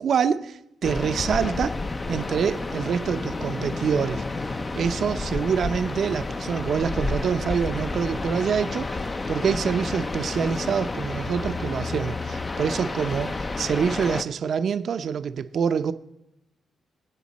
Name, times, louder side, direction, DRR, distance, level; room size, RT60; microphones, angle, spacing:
voice 1, 0.0-1.8 2.1-4.2 4.8-8.9 9.3-15.9, right 7 dB, 65° right, 10 dB, 0.7 m, -26 dB
sound 1, 0.8-14.2, left 3 dB, 30° left, 0.6 m, -30 dB
22.5 x 8.2 x 4.2 m, 0.89 s
cardioid pair, 95°, 0 cm